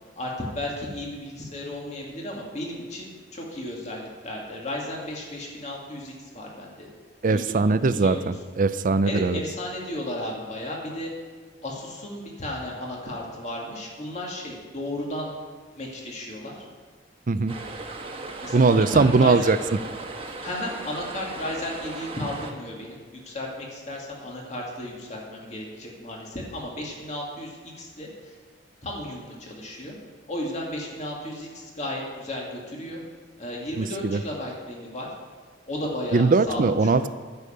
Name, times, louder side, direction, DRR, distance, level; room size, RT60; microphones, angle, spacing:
voice 1, 0.2-6.9 7.3-7.7 7.9-8.3 9.0-11.1 11.6-15.3 15.8-16.7 18.4-19.5 20.4-28.4 28.8-30.0 30.3-33.0 33.4-35.1 35.7-37.1, left 1 dB, 40° left, -2 dB, 2.4 m, -34 dB
voice 2, 7.2-9.4 17.3-17.5 18.5-19.6 33.8-34.2 36.1-37.1, right 3 dB, 45° right, 13 dB, 0.5 m, -20 dB
sound 1, 17.5-22.5, right 3 dB, 30° right, 1.3 m, -37 dB
10.0 x 7.0 x 9.2 m, 1.5 s
head